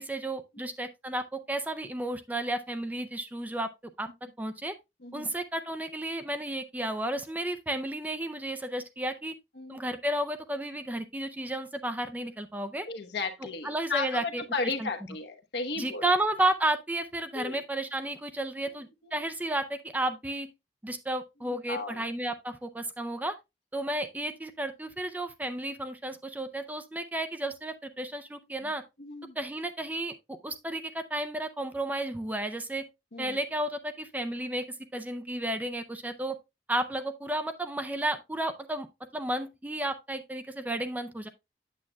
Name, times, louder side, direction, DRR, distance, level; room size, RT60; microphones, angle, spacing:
voice 1, 0.0-3.7 4.0-4.1 4.4-4.7 5.1-9.3 9.7-12.9 13.6-14.9 15.8-20.5 20.8-23.3 23.7-28.8 29.4-32.9 33.2-34.6 34.9-36.4 36.7-38.9 39.1-41.3, right 1 dB, 10° right, 0.4 m, -32 dB
voice 2, 12.9-16.1 17.3-17.6 18.6-19.2 21.4-22.0 28.6-28.7 29.0-29.4 33.1-33.4, left 4 dB, 75° left, 1.1 m, -35 dB
8.4 x 7.3 x 2.2 m
head